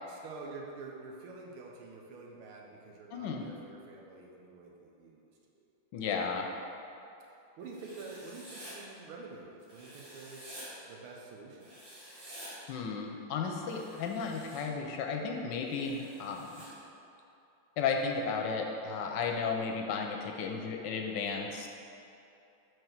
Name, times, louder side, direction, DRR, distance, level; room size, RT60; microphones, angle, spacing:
voice 1, 0.1-5.3 7.6-10.5 10.8-12.0, right 3 dB, 90° right, -1 dB, 1.7 m, -47 dB
voice 2, 3.1-3.4 5.9-6.5 12.7-16.6 17.8-21.7, left 5 dB, 70° left, 2 dB, 1.2 m, -34 dB
Writing, 7.7-8.7 9.7-10.7 11.6-12.5 13.6-14.6 15.7-16.7, right 1 dB, 70° right, 2.4 m, -50 dB
5.1 x 4.7 x 5.8 m, 2.8 s
omnidirectional pair, 2.3 m